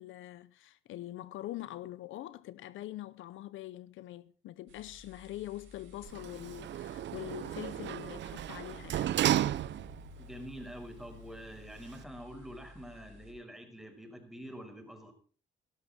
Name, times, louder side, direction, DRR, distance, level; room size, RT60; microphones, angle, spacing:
voice 1, 0.0-9.2, left 15 dB, 80° left, 0.7 m, -44 dB
sound 1, 4.7-13.3, left 2 dB, 90° right, 6.1 m, -54 dB
Sliding door, 6.0-10.2 10.6-10.7, right 12 dB, 65° right, 0.7 m, -33 dB
voice 2, 10.2-15.1, equal, ahead, 5.3 m, -46 dB
17.5 x 13.0 x 4.3 m
cardioid pair, 90°, 20 cm